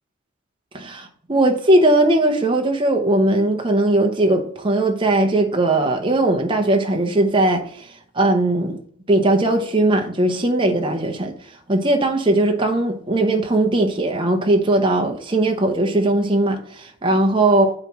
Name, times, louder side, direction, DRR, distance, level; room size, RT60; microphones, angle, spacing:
voice 1, 0.7-8.8 9.1-11.3 11.7-17.7, right 1 dB, 25° right, 0.8 m, -19 dB
8.8 x 3.1 x 5.8 m
head